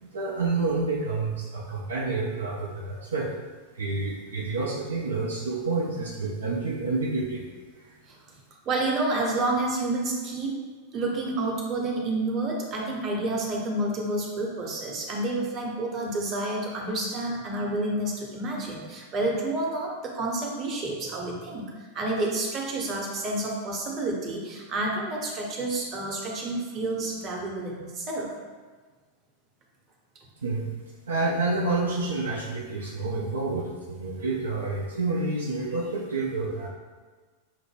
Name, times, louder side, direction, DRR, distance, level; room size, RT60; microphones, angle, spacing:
voice 1, 0.0-3.3 3.7-7.5 7.9-8.0 30.4-30.7 31.1-36.7, right 3 dB, 70° right, -2 dB, 0.4 m, -29 dB
voice 2, 8.7-28.3, right 2 dB, 30° right, -1 dB, 0.8 m, -29 dB
5.6 x 2.1 x 3.2 m, 1.4 s
figure-of-eight pair, 90°, 0 cm